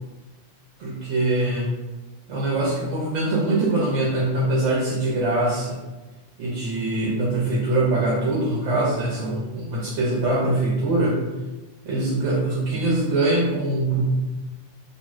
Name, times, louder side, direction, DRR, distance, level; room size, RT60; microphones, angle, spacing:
voice 1, 0.8-1.7 2.3-5.8 6.4-11.2 11.8-14.1, right 2 dB, 70° right, -4 dB, 0.8 m, -23 dB
2.5 x 2.3 x 3.0 m, 1.2 s
omnidirectional pair, 1.3 m